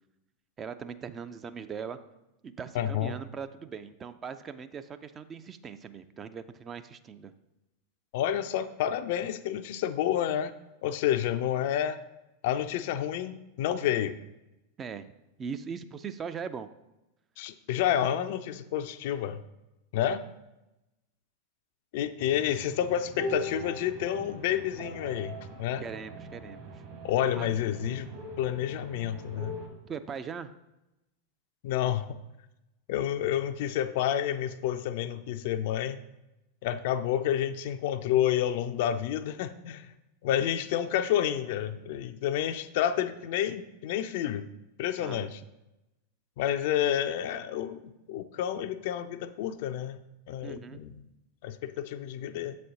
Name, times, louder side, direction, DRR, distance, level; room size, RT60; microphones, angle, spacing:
voice 1, 0.6-2.0 2.4-7.3 14.8-15.1 15.4-16.7 25.8-26.8 27.3-27.5 29.8-30.5 45.0-45.3 50.4-50.8, right 6 dB, 25° right, 10 dB, 0.4 m, -40 dB
voice 2, 2.7-3.2 8.1-10.6 10.8-12.0 12.4-14.2 17.4-19.4 19.9-20.2 21.9-25.8 27.0-29.6 31.6-32.2 32.9-36.0 36.6-39.9 40.2-44.5 44.8-45.4 46.4-50.0 50.3-50.9 51.4-52.6, left 10 dB, 50° left, 11 dB, 0.4 m, -29 dB
sound 1, 22.2-29.7, right 1 dB, 40° right, 1.5 m, -41 dB
7.5 x 4.2 x 4.9 m, 0.94 s
figure-of-eight pair, 90°, 0 cm